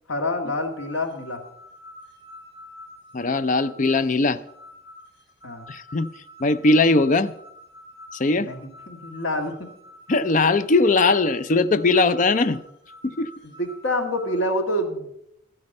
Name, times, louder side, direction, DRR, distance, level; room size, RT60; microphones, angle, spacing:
voice 1, 0.1-1.4 5.4-5.7 8.4-9.7 13.6-15.1, left 1 dB, 75° left, 1.8 m, -27 dB
sound 1, 0.6-14.4, left 1 dB, 55° left, 2.2 m, -47 dB
voice 2, 3.1-4.4 5.7-6.1 6.4-7.3 8.1-8.5 10.1-12.6 13.0-13.3, left 3 dB, 40° left, 0.5 m, -20 dB
13.0 x 9.6 x 5.3 m
head